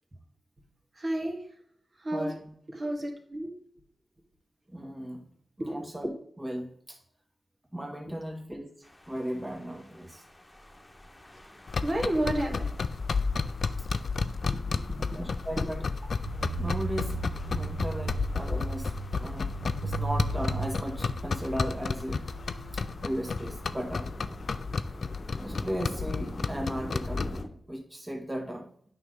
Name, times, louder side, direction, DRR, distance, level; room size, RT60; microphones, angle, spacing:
voice 1, 0.9-1.4 2.0-2.4 2.7-3.5 5.6-5.9 11.8-12.7 15.6-15.8, right 1 dB, 50° right, 2 dB, 2.0 m, -31 dB
voice 2, 2.1-2.5 4.7-5.2 5.6-6.1 6.4-7.0 7.7-8.7 9.1-10.2 15.1-15.8 16.3-17.2 17.5-18.9 19.2-19.6 19.8-22.2 23.0-24.1 25.4-27.3 27.7-28.7, equal, 20° right, 1 dB, 2.1 m, -36 dB
sound 1, 8.8-27.5, left 1 dB, 20° left, 1.3 m, -47 dB
sound 2, 11.7-27.4, left 4 dB, 70° left, 0.4 m, -32 dB
sound 3, 16.3-25.1, right 5 dB, 90° right, 0.5 m, -38 dB
8.8 x 5.6 x 3.8 m, 0.63 s
cardioid pair, 40°, 0 cm